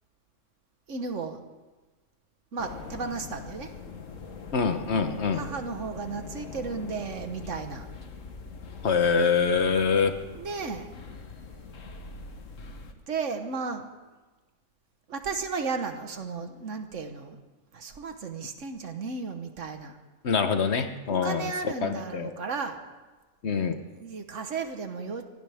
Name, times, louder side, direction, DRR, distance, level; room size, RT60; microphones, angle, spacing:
voice 1, 0.9-1.4 2.5-3.7 5.3-7.9 10.3-11.0 13.1-13.9 15.1-17.4 17.7-20.0 21.1-22.8 23.9-25.3, right 4 dB, 70° right, 7 dB, 1.5 m, -34 dB
sound 1, 2.6-12.9, left 4 dB, 75° left, 1.6 m, -43 dB
voice 2, 4.5-5.5 8.8-10.2 20.2-21.5 21.8-22.3 23.4-23.7, left 5 dB, 60° left, 8 dB, 1.2 m, -25 dB
24.0 x 17.0 x 3.5 m, 1.2 s
omnidirectional pair, 1.3 m